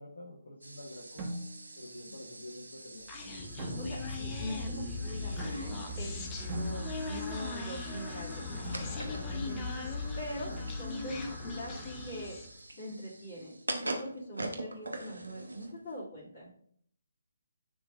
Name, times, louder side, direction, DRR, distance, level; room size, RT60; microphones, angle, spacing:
voice 1, 0.0-1.4 1.7-3.1, left 1 dB, 65° left, 0 dB, 1.2 m, -47 dB
sound 1, 0.6-16.0, right 2 dB, 80° right, 1.0 m, -45 dB
sound 2, 1.2-1.8 3.6-4.3 5.4-6.0 6.5-7.3 8.6-9.0 10.5-11.1, right 1 dB, 25° right, 1.6 m, -41 dB
Human voice, 3.1-12.6, left 3 dB, 20° left, 0.9 m, -38 dB
voice 2, 3.8-12.4 12.8-16.5, equal, 45° left, -11 dB, 2.6 m, -43 dB
10.5 x 3.6 x 2.5 m, 0.63 s
figure-of-eight pair, 145°, 0 cm